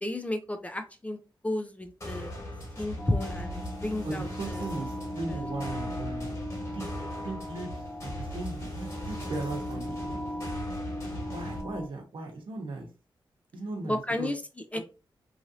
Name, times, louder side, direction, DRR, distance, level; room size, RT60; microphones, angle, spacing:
voice 1, 0.0-2.3 2.8-4.6 5.3-5.4 13.8-14.4 14.7-14.8, left 1 dB, 15° left, 7 dB, 0.4 m, -32 dB
sound 1, 2.0-11.6, equal, 35° left, 1.7 m, -39 dB
sound 2, 3.0-11.9, left 1 dB, 70° left, 0.9 m, -38 dB
voice 2, 4.0-6.3 6.7-6.9 7.2-10.5 11.2-12.9 13.5-14.3 14.7-14.8, right 2 dB, 70° right, 2 dB, 0.9 m, -38 dB
3.1 x 2.6 x 2.6 m, 0.32 s
wide cardioid pair, 90°, 9 cm